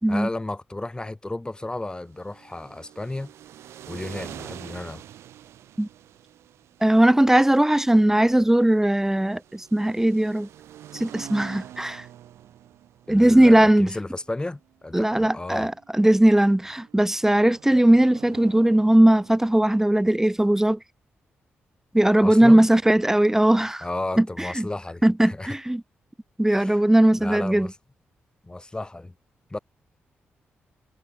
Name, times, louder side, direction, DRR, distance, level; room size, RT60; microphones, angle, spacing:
voice 1, 0.1-3.3 3.9-5.0 13.1-15.7 22.2-22.7 23.8-25.5 26.6-26.8 27.2-27.7 28.4-29.1 29.5-29.6, left 2 dB, 20° left, 6.1 m, -33 dB
sound 1, 2.0-19.9, right 12 dB, 85° right, 6.9 m, -46 dB
voice 2, 6.8-10.5 10.9-12.1 13.1-14.0 14.9-20.8 21.9-23.8 24.2-24.7 25.0-25.8 26.4-27.7, right 1 dB, 10° right, 1.9 m, -19 dB
cardioid pair, 65°, 4 cm